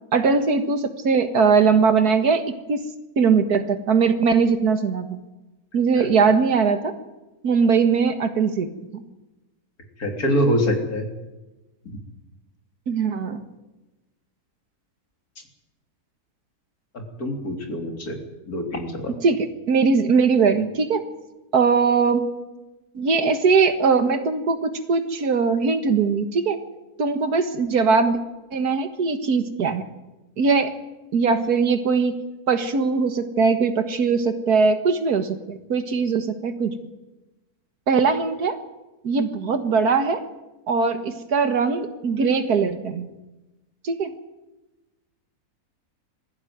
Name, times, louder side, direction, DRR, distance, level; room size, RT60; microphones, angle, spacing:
voice 1, 0.1-2.9 3.2-5.2 5.7-7.0 7.4-9.0 12.9-13.4 19.2-21.1 21.5-22.3 23.0-26.6 27.0-28.2 28.5-29.8 30.4-30.7 31.1-36.7 37.9-38.6 39.0-40.2 40.7-43.1 43.8-44.1, right 5 dB, 85° right, 8 dB, 2.1 m, -20 dB
voice 2, 10.0-11.1 16.9-18.2 18.5-19.1, equal, 75° left, 2 dB, 3.9 m, -24 dB
21.0 x 15.0 x 9.4 m, 1.1 s
omnidirectional pair, 1.6 m